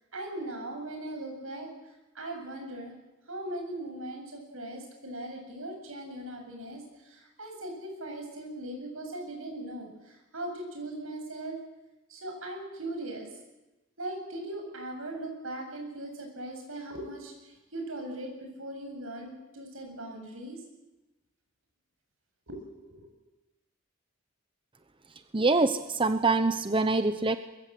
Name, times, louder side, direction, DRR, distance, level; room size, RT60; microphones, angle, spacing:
voice 1, 0.1-1.7 2.1-2.9 3.3-11.6 12.1-13.3 14.0-20.6 22.5-23.1, right 1 dB, 80° right, 3 dB, 7.7 m, -39 dB
voice 2, 25.3-27.4, right 3 dB, 25° right, 10 dB, 0.9 m, -25 dB
23.5 x 22.5 x 7.9 m, 1.0 s
head